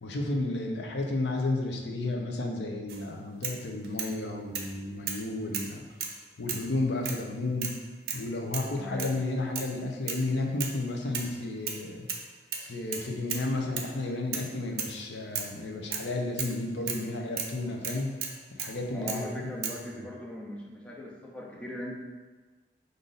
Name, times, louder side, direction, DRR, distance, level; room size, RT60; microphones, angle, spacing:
voice 1, 0.0-5.8 6.4-7.7 8.1-12.1 12.6-18.2 18.5-19.7, left 2 dB, 85° left, 2 dB, 0.6 m, -32 dB
sound 1, 2.9-3.0 3.4-4.1 4.5-4.7 5.1-5.2 5.5-6.2 6.5-6.7 7.0-7.2 7.6-7.8 8.1-8.3 8.5-8.7 9.0-9.2 9.6-9.7 10.1-10.2 10.6-10.8 11.1-11.8 12.1-12.3 12.5-13.5 13.8-13.9 14.3-14.5 14.8-15.0 15.4-15.5 15.9-16.1 16.4-16.6 16.9-17.0 17.4-17.5 17.8-18.8 19.1-19.2 19.6-19.8, right 6 dB, 60° right, 0.5 m, -35 dB
voice 2, 8.8-9.2 18.9-21.9, left 1 dB, 5° left, -3 dB, 0.6 m, -39 dB
5.0 x 2.6 x 3.9 m, 1.3 s
head